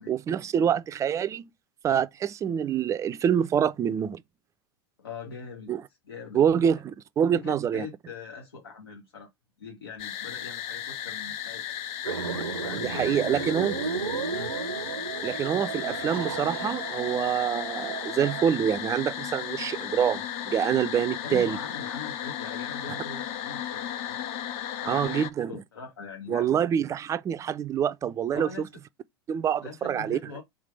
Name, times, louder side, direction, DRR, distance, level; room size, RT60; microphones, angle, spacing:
voice 1, 0.0-1.5 1.8-4.2 5.7-5.8 6.3-7.9 12.7-13.7 15.2-21.6 24.9-25.5 26.3-28.7 29.3-30.2, right 8 dB, 25° right, 0.4 m, -26 dB
voice 2, 5.0-5.7 6.1-6.7 7.3-9.3 9.6-11.8 12.6-13.7 14.3-14.5 21.2-24.2 24.8-26.6 28.3-28.7 29.6-30.4, left 5 dB, 80° left, 0.9 m, -42 dB
sound 1, 10.0-25.3, left 10 dB, 45° left, 0.6 m, -35 dB
sound 2, 12.0-18.5, right 6 dB, 85° right, 0.6 m, -34 dB
3.5 x 3.3 x 4.5 m
hypercardioid pair, 90°, 13 cm